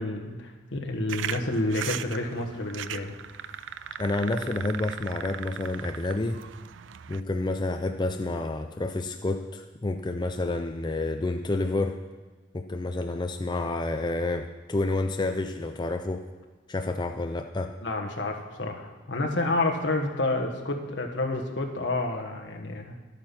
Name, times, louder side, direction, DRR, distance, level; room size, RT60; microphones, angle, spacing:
voice 1, 0.0-3.1 17.8-22.9, left 2 dB, 70° left, 2 dB, 1.5 m, -29 dB
sound 1, 1.1-7.2, right 9 dB, 80° right, 0.4 m, -38 dB
voice 2, 4.0-6.4 7.1-12.0 12.5-16.3 16.7-17.7, left 2 dB, 25° left, 5 dB, 0.5 m, -29 dB
11.5 x 9.0 x 5.9 m, 1.3 s
head